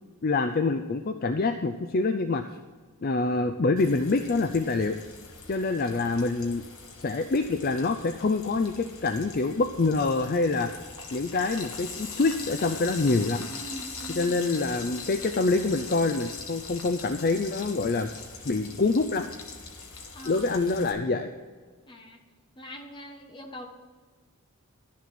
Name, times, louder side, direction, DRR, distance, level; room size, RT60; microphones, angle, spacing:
voice 1, 0.2-2.6 3.0-5.0 5.5-6.6 7.0-10.7 11.1-13.5 14.1-18.1 18.5-19.3 20.2-21.3, left 3 dB, 40° left, 8 dB, 0.4 m, -26 dB
Frying (food), 3.8-20.9, left 4 dB, 80° left, 1.8 m, -42 dB
voice 2, 13.5-14.4 20.1-20.5 21.9-22.2 22.6-23.7, equal, 20° left, 3 dB, 1.2 m, -42 dB
12.0 x 7.3 x 6.0 m, 1.5 s
head